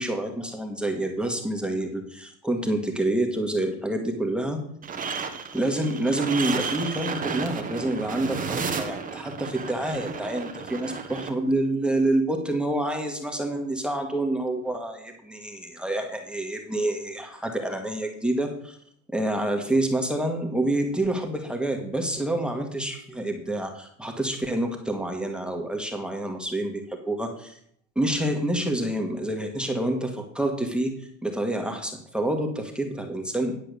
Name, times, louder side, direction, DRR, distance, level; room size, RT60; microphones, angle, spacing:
voice 1, 0.0-4.6 5.5-18.8 19.1-27.6 28.0-33.6, right 1 dB, ahead, 2 dB, 1.6 m, -27 dB
sound 1, 4.8-11.3, right 5 dB, 20° right, 1.3 m, -32 dB
10.5 x 5.5 x 6.7 m, 0.67 s
supercardioid pair, 120°, 40 cm